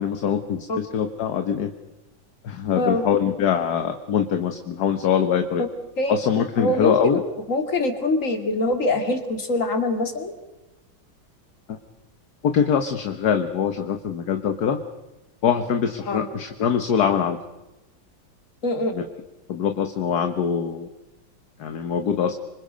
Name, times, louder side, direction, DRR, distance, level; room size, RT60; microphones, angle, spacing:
voice 1, 0.0-1.7 2.4-5.6 6.1-7.2 11.7-11.8 12.4-14.8 15.4-17.4 18.9-19.1 19.5-20.9 21.6-22.3, left 8 dB, 60° left, 7 dB, 1.6 m, -23 dB
voice 2, 6.6-7.2 7.5-10.3 16.1-16.3 18.6-18.9, left 2 dB, 40° left, 6 dB, 2.6 m, -23 dB
26.5 x 25.5 x 5.2 m, 1.0 s
omnidirectional pair, 2.1 m